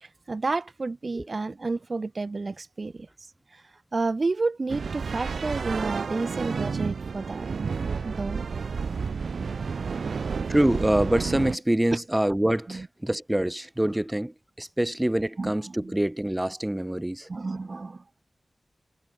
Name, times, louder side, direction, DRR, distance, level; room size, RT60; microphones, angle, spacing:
voice 1, 0.0-3.1 3.5-3.6 3.9-7.5 8.0-8.4 9.4-9.5 10.0-10.2 12.7-12.9 15.4-15.9 17.3-18.0, right 3 dB, 55° right, 2.4 m, -31 dB
sound 1, 4.7-11.6, right 5 dB, 90° right, 0.7 m, -31 dB
voice 2, 10.5-17.3, right 1 dB, 15° right, 3.8 m, -25 dB
wide cardioid pair, 65°, 0 cm